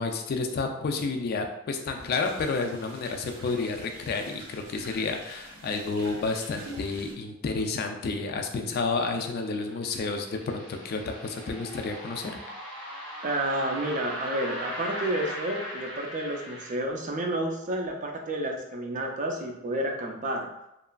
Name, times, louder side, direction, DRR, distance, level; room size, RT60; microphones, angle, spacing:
voice 1, 0.0-12.3, left 4 dB, 45° left, 4 dB, 0.3 m, -30 dB
sound 1, 1.9-7.1, right 1 dB, 85° right, 0.7 m, -46 dB
sound 2, 9.3-16.8, equal, 5° left, 0.7 m, -39 dB
voice 2, 13.2-20.5, right 1 dB, 35° right, 2 dB, 0.4 m, -30 dB
2.9 x 2.4 x 2.2 m, 0.87 s
head